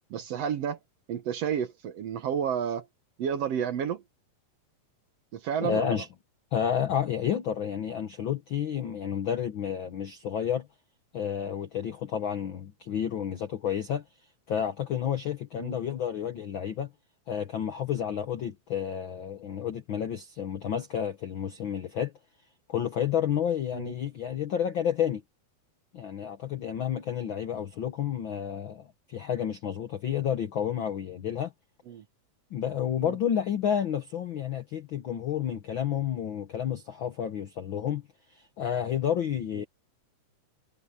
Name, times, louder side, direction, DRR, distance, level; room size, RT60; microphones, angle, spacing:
voice 1, 0.1-0.8 1.1-2.9 3.2-4.0 5.3-6.0 15.6-15.8 23.7-23.9 31.9-32.0 33.0-33.2 39.6-39.7, right 8 dB, 65° right, 1.8 m, -31 dB
voice 2, 5.6-6.1 6.5-10.7 11.1-14.0 14.5-16.9 17.3-22.1 22.7-25.2 25.9-31.5 32.5-38.0 38.3-39.6, left 9 dB, 70° left, 1.2 m, -30 dB
omnidirectional pair, 3.6 m